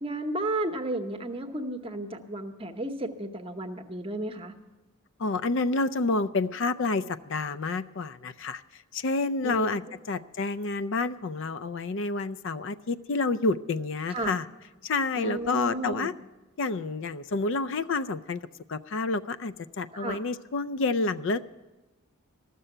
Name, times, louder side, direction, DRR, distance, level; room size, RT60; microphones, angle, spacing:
voice 1, 0.0-4.6 9.4-9.7 14.1-14.3 15.2-16.1 19.9-20.2, right 1 dB, 25° right, 6 dB, 0.8 m, -33 dB
voice 2, 5.2-8.6 8.9-9.8 10.1-14.4 14.8-16.1 16.6-18.4 18.7-21.4, left 3 dB, 55° left, 14 dB, 0.4 m, -29 dB
14.0 x 6.8 x 10.0 m, 1.1 s
head